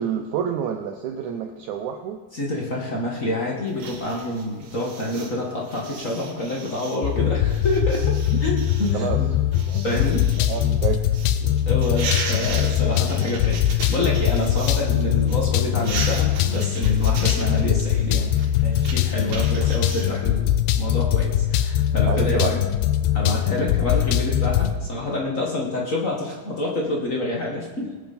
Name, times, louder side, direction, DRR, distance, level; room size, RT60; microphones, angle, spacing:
voice 1, 0.0-2.2 8.3-8.4 8.9-9.2 9.7-9.8 10.4-11.0 12.8-13.1 19.3-19.5 22.1-22.5, right 8 dB, 90° right, 5 dB, 1.7 m, -28 dB
voice 2, 2.3-8.1 8.4-9.3 9.8-10.2 11.4-18.3 18.6-22.6 23.1-27.9, left 1 dB, 40° left, -2 dB, 1.2 m, -27 dB
sound 1, 3.7-14.9 15.2-20.0, right 4 dB, 70° right, 3.3 m, -36 dB
sound 2, 7.0-24.8, left 11 dB, 90° left, 2.6 m, -22 dB
19.5 x 9.1 x 4.3 m, 1.3 s
omnidirectional pair, 4.4 m